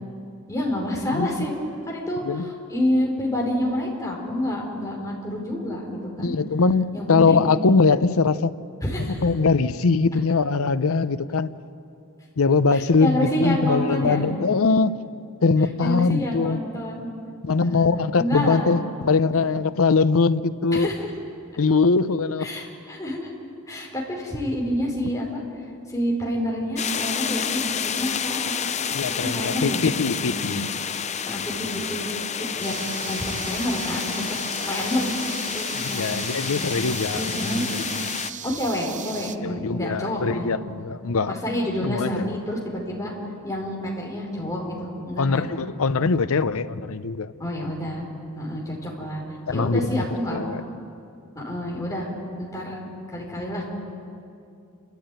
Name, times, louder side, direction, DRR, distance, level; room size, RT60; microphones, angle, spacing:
voice 1, 0.5-1.5 1.9-6.3 6.9-7.5 8.8-9.3 12.7-14.3 15.8-17.1 17.6-17.9 18.2-18.7 19.3-19.4 20.7-21.1 22.4-23.3 23.7-25.4 25.9-28.5 29.0-29.8 30.2-30.5 31.2-32.7 33.1-34.1 34.7-36.7 37.1-37.6 38.4-40.5 41.3-43.1 43.4-45.5 47.4-48.0 48.3-49.2 49.5-50.4 51.3-52.1 52.4-53.7, left 1 dB, 15° left, -3 dB, 5.0 m, -28 dB
voice 2, 6.2-8.5 9.2-11.5 12.4-15.0 15.4-16.6 17.4-20.9 21.6-22.5 28.9-30.6 35.8-37.2 39.4-41.3 41.8-42.3 45.2-47.3 49.5-50.0 50.3-50.6, left 4 dB, 70° left, 14 dB, 0.7 m, -22 dB
sound 1, 26.8-38.3, left 7 dB, 30° left, 0.6 m, -29 dB
sound 2, 32.6-39.4, right 8 dB, 35° right, 0.7 m, -37 dB
29.5 x 13.0 x 9.3 m, 2.5 s
head